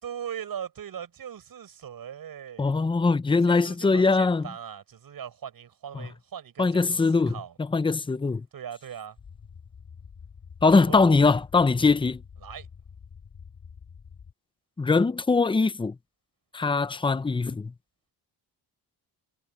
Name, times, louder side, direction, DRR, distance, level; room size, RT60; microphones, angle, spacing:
voice 1, 0.0-2.7 3.4-7.6 8.5-9.2 10.6-11.2 12.4-12.7, right 8 dB, 60° right, 6.4 m, -39 dB
voice 2, 2.6-4.5 5.9-6.1 6.6-8.4 10.6-12.2 14.8-15.9 16.5-17.7, left 4 dB, 15° left, 0.6 m, -22 dB
sound 1, 9.2-14.3, left 6 dB, 40° left, 2.8 m, -47 dB
cardioid pair, 130°, 40 cm